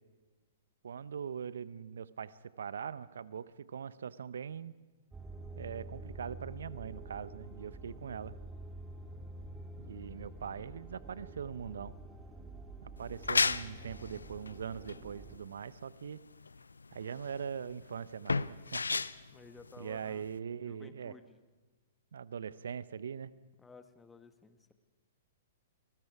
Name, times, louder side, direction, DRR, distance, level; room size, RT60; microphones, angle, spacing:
voice 1, 0.8-4.7 5.6-8.3 9.8-12.0 12.8-16.2 16.9-18.8 19.8-21.1 22.1-23.3, right 7 dB, 70° right, 17 dB, 0.8 m, -41 dB
sound 1, 5.1-15.4, right 2 dB, 10° right, 2.3 m, -48 dB
sound 2, 13.0-20.4, left 4 dB, 80° left, 0.6 m, -35 dB
voice 2, 19.3-20.2 20.6-21.4 23.6-24.7, left 4 dB, 10° left, 9 dB, 1.4 m, -55 dB
29.0 x 20.0 x 4.8 m, 1.3 s
figure-of-eight pair, 115°, 0 cm